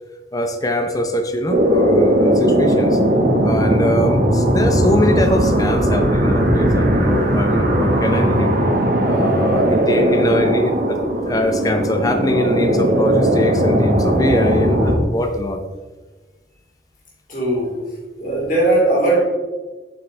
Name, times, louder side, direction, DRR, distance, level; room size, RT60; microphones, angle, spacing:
voice 1, 0.3-3.0 3.4-8.6 9.0-11.0 11.2-15.6, equal, 20° left, 5 dB, 0.7 m, -22 dB
sound 1, 1.5-15.0, right 1 dB, 55° right, 1.4 m, -17 dB
voice 2, 17.3-17.9 18.2-19.2, right 2 dB, 50° left, -5 dB, 2.9 m, -18 dB
8.4 x 7.8 x 3.3 m, 1.3 s
head